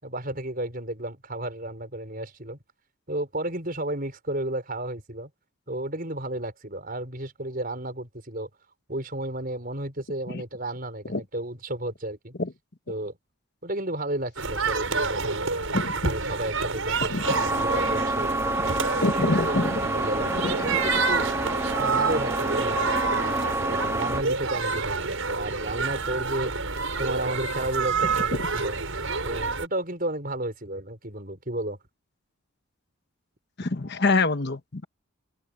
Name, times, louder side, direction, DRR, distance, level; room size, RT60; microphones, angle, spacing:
voice 1, 0.0-2.6 3.1-5.3 5.7-8.5 8.9-12.3 12.9-13.1 13.6-15.5 16.0-18.4 19.2-20.4 20.6-21.3 21.8-26.5 27.0-28.8 29.2-31.8, right 1 dB, 40° right, 5.8 m, -33 dB
sound 1, 14.4-29.7, right 4 dB, 70° right, 5.6 m, -28 dB
sound 2, 17.2-24.2, right 2 dB, 10° right, 0.5 m, -28 dB
voice 2, 19.0-19.7 20.4-20.6 33.6-34.8, left 3 dB, 50° left, 1.2 m, -25 dB
head